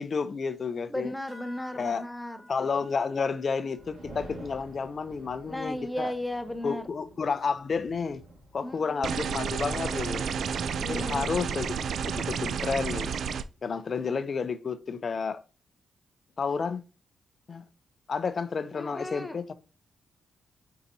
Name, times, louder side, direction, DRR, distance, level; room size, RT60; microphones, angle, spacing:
voice 1, 0.0-1.1 1.8-2.0 2.5-6.1 6.6-8.2 8.5-10.2 10.8-11.7 12.1-13.1 13.6-15.4 16.4-16.8 17.5-17.6 18.1-19.5, left 5 dB, 50° left, 0.5 m, -31 dB
voice 2, 0.9-2.4 5.5-6.9 8.6-9.2 10.8-11.4 18.7-19.5, left 1 dB, 10° left, 0.7 m, -35 dB
sound 1, 1.3-6.2, equal, 35° right, 2.0 m, -55 dB
sound 2, 3.7-9.2, right 1 dB, 90° right, 1.7 m, -49 dB
sound 3, 9.0-13.4, right 6 dB, 70° right, 0.3 m, -31 dB
4.7 x 4.0 x 2.7 m
cardioid pair, 75°, 0 cm